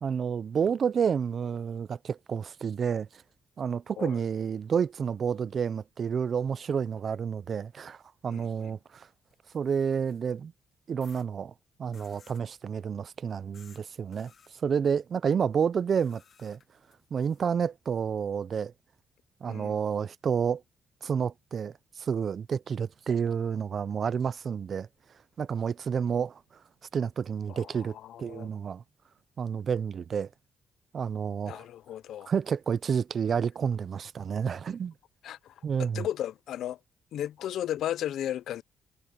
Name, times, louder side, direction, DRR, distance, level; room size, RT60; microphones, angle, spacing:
voice 1, 0.0-3.2 3.6-9.1 9.5-10.5 10.9-11.5 11.8-16.6 17.1-18.7 19.4-20.6 21.0-24.9 25.4-26.4 26.9-28.8 29.4-30.3 30.9-31.6 32.3-34.9 35.6-36.1, right 7 dB, 50° right, 0.6 m, -30 dB
voice 2, 8.3-8.7 19.5-19.8 27.5-28.5 31.5-32.3 35.2-36.8 37.1-38.6, left 11 dB, 75° left, 0.7 m, -35 dB
sound 1, 9.3-10.4 11.0-11.3 11.9-12.5 13.5-13.8 14.1-14.5 15.9-17.4, left 7 dB, 50° left, 1.9 m, -59 dB
cardioid pair, 90°, 0 cm